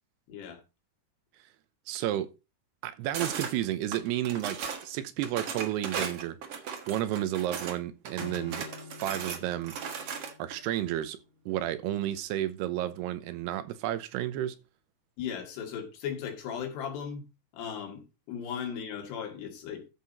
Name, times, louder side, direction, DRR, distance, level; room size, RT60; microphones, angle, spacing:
voice 1, 0.3-0.6 15.2-17.3 17.5-19.9, left 7 dB, 80° left, 4.3 m, -37 dB
voice 2, 1.9-2.3 2.8-6.4 6.9-8.7 9.0-9.7 10.4-11.2 11.5-14.6, right 13 dB, 85° right, 2.9 m, -31 dB
sound 1, 3.1-3.5 3.9-4.8 5.2-7.8 8.0-10.5, right 6 dB, 60° right, 1.5 m, -36 dB
Acoustic guitar / Strum, 8.2-11.7, left 4 dB, 50° left, 2.2 m, -48 dB
13.5 x 5.8 x 4.2 m
omnidirectional pair, 4.7 m